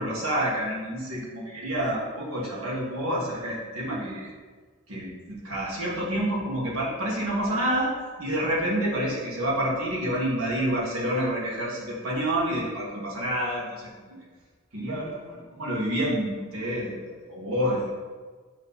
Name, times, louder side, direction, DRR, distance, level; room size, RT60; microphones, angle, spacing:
voice 1, 0.0-4.3 4.9-7.9 8.2-14.2 14.7-17.9, right 1 dB, 75° right, -5 dB, 1.5 m, -28 dB
6.5 x 3.0 x 5.4 m, 1.5 s
head